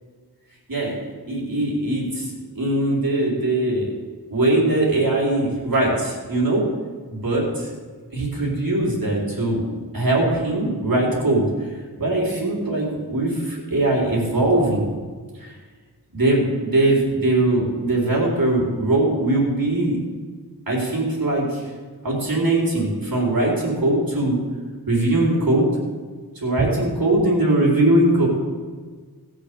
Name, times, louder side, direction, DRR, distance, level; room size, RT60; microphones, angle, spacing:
voice 1, 0.7-1.0 1.3-3.9 4.3-6.7 7.1-7.7 8.1-9.6 9.9-11.5 12.0-14.9 15.4-15.5 16.1-20.0 20.7-21.7 22.0-24.4 24.9-25.7 26.4-28.3, right 2 dB, 65° right, -2 dB, 4.0 m, -21 dB
17.0 x 6.3 x 6.8 m, 1.5 s
wide cardioid pair, 60°, 37 cm